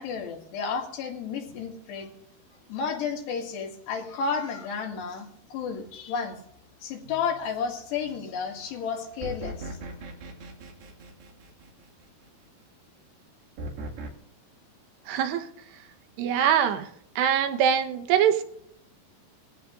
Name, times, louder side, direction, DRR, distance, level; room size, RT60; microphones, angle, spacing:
voice 1, 0.0-2.1 2.7-6.4 6.8-9.8, left 5 dB, 80° left, 2 dB, 4.1 m, -32 dB
sound 1, 9.2-12.1 13.6-14.1, right 1 dB, 65° right, 3.9 m, -38 dB
voice 2, 15.1-15.5 16.2-16.9 17.2-18.4, right 9 dB, 80° right, 8 dB, 3.2 m, -23 dB
21.0 x 16.0 x 2.6 m, 0.72 s
omnidirectional pair, 4.9 m